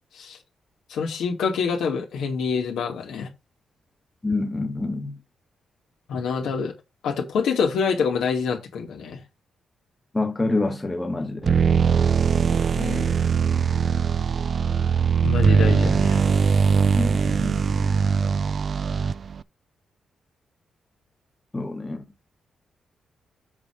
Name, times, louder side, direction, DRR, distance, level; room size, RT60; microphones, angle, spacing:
voice 1, 0.9-3.3 6.1-6.7 7.0-9.2 12.8-13.1 15.2-16.2, left 5 dB, 90° left, 2.5 m, -26 dB
voice 2, 4.2-5.2 10.1-11.5 16.9-18.0 21.5-22.0, left 2 dB, 15° left, 1.4 m, -27 dB
sound 1, 11.4-19.4, right 6 dB, 50° right, 0.4 m, -21 dB
7.6 x 5.0 x 5.0 m
cardioid pair, 105°, 0 cm